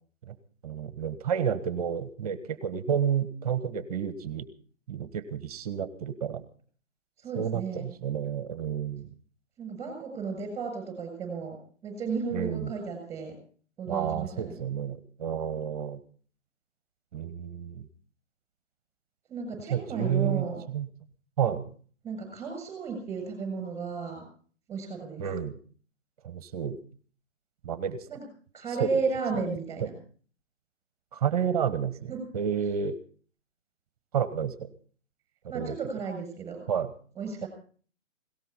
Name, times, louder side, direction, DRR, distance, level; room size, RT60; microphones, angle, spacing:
voice 1, 0.6-4.5 4.9-6.4 7.4-9.1 12.3-12.7 13.9-16.0 17.1-17.9 19.7-20.9 21.4-21.7 25.2-25.6 26.2-26.8 27.6-28.0 28.8-28.9 31.1-33.0 34.1-34.7 35.5-35.7 36.7-36.9, right 8 dB, 30° right, 14 dB, 1.3 m, -30 dB
voice 2, 7.2-7.9 9.6-11.6 11.8-13.4 13.8-14.6 19.3-20.6 22.0-24.2 24.7-25.2 28.1-28.3 28.5-29.9 32.1-32.2 35.5-36.6 37.2-37.5, right 5 dB, 10° right, 6 dB, 7.1 m, -34 dB
19.5 x 17.5 x 4.1 m, 0.43 s
figure-of-eight pair, 135°, 36 cm